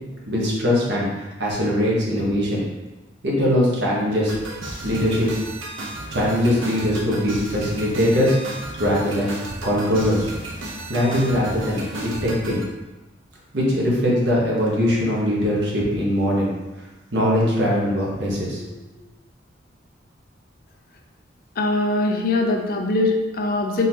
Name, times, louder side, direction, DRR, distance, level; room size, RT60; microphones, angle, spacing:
voice 1, 0.3-2.6 3.2-4.4 4.8-5.3 6.1-8.4 8.8-9.3 9.6-10.3 10.6-12.6 13.5-16.5 17.1-18.7, equal, 60° right, -4 dB, 1.1 m, -21 dB
sound 1, 4.3-12.6, right 1 dB, 85° right, 0.7 m, -33 dB
voice 2, 21.6-23.9, left 2 dB, 50° left, 2 dB, 0.5 m, -22 dB
4.0 x 3.7 x 2.8 m, 1.1 s
head